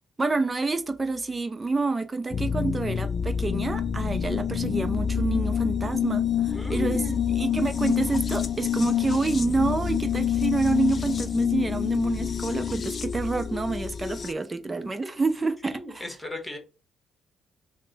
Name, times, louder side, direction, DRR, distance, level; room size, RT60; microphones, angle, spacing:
voice 1, 0.2-7.0 7.4-16.0, right 3 dB, 25° right, 0.6 m, -28 dB
sound 1, 2.3-14.3, left 8 dB, 45° left, 0.3 m, -27 dB
voice 2, 6.5-7.3 14.2-14.3 15.7-16.6, left 1 dB, 10° left, 1.3 m, -36 dB
3.2 x 2.2 x 3.9 m
cardioid pair, 90°, 0 cm